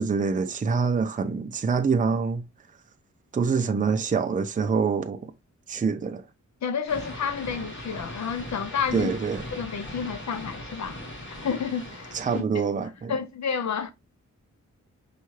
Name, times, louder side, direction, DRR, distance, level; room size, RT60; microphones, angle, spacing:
voice 1, 0.0-2.4 3.3-5.3 5.7-6.2 8.9-9.4 12.1-13.1, right 5 dB, 25° right, 0.5 m, -25 dB
voice 2, 6.6-9.1 9.5-11.0 11.3-12.7 13.1-13.9, left 6 dB, 65° left, 0.6 m, -30 dB
sound 1, 6.9-12.4, left 1 dB, 40° left, 1.5 m, -39 dB
5.5 x 2.4 x 3.1 m
wide cardioid pair, 125°, 30 cm